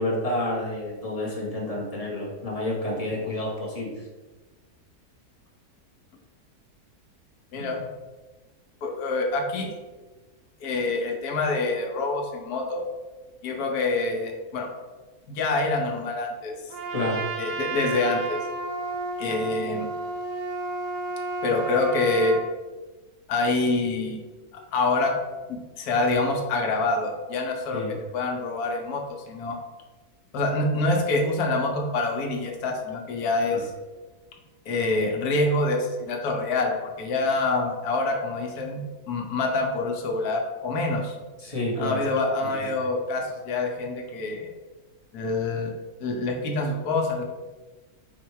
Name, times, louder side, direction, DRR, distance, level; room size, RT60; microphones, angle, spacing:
voice 1, 0.0-3.9 7.5-7.9 16.9-17.2 27.7-27.9 33.5-33.6 41.4-42.0 42.4-42.7, left 1 dB, 30° left, -3 dB, 0.7 m, -29 dB
voice 2, 8.8-9.8 10.6-12.9 13.4-14.7 15.3-16.5 17.4-18.4 19.2-19.9 21.4-22.3 23.3-24.3 24.5-25.2 25.5-29.6 30.3-33.7 34.7-38.8 39.1-41.1 41.8-44.5 45.1-45.7 46.0-47.2, left 2 dB, 80° left, 2 dB, 1.2 m, -26 dB
Trumpet, 16.7-22.5, right 2 dB, 80° right, 1.1 m, -32 dB
4.3 x 2.2 x 4.5 m, 1.2 s
omnidirectional pair, 1.6 m